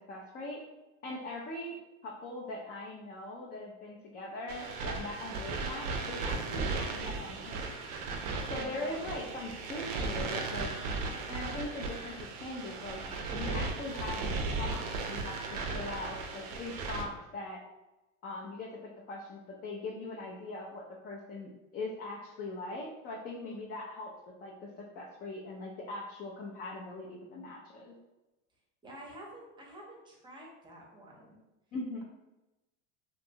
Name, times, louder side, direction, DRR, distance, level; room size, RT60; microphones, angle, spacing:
voice 1, 0.1-0.6 1.0-1.8 2.0-7.9 8.5-10.7 11.3-17.6 18.2-24.1 24.4-27.9 31.7-32.0, left 2 dB, 25° left, -2 dB, 0.4 m, -41 dB
sound 1, 4.5-17.1, right 3 dB, 55° right, 0.5 m, -36 dB
voice 2, 8.6-9.1 28.8-31.4, right 1 dB, 15° right, -2 dB, 0.7 m, -49 dB
2.7 x 2.2 x 2.7 m, 1.0 s
supercardioid pair, 115°, 37 cm